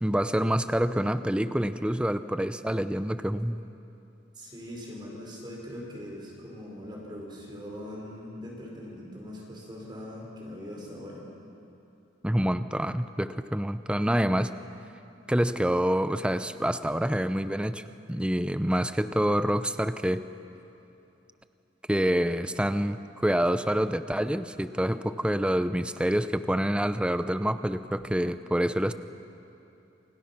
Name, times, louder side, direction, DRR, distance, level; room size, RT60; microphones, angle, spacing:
voice 1, 0.0-3.6 12.2-14.5 15.3-17.8 18.1-20.2 21.9-28.9, equal, 5° right, 11 dB, 0.6 m, -27 dB
voice 2, 4.3-11.2, left 1 dB, 25° right, -2 dB, 5.0 m, -41 dB
28.0 x 26.5 x 6.0 m, 2.8 s
head